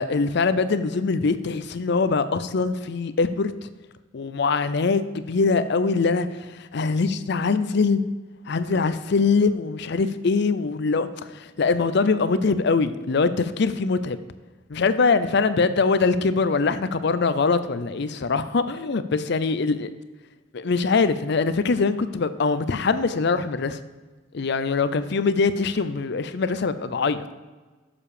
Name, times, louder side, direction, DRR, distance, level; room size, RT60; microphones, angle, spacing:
voice 1, 0.0-3.5 4.1-6.3 6.6-8.0 8.5-14.2 14.7-19.9 20.5-23.8 24.3-27.2, left 4 dB, 60° left, 13 dB, 0.5 m, -23 dB
7.4 x 6.9 x 4.9 m, 1.3 s
head